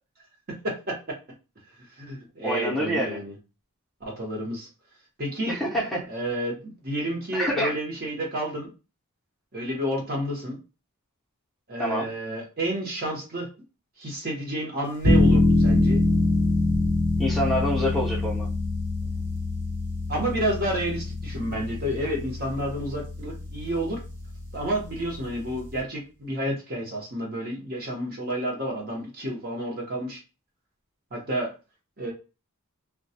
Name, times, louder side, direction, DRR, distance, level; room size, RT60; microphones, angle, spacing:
voice 1, 0.6-1.2 1.8-3.3 4.0-4.7 5.2-5.6 6.1-8.7 9.5-10.6 11.7-13.5 14.0-16.0 20.1-24.0 24.5-30.2 31.1-31.5 32.0-32.1, right 1 dB, 45° right, -1 dB, 0.9 m, -30 dB
voice 2, 2.4-3.2 5.5-6.1 7.3-7.7 11.8-12.1 17.2-18.5, equal, ahead, -6 dB, 0.7 m, -26 dB
sound 1, 15.0-25.8, left 2 dB, 80° right, 1.0 m, -25 dB
2.2 x 2.2 x 2.7 m, 0.30 s
head